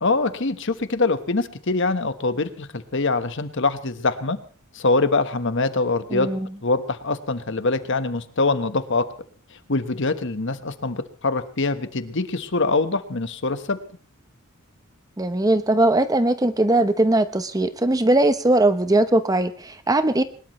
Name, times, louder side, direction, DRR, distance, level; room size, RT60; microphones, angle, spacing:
voice 1, 0.0-4.4 4.7-6.3 6.6-9.0 9.7-13.8, left 3 dB, 55° left, 10 dB, 1.2 m, -24 dB
voice 2, 6.1-6.5 15.2-20.2, right 1 dB, 15° right, 11 dB, 0.8 m, -20 dB
22.0 x 20.0 x 3.1 m, 0.41 s
head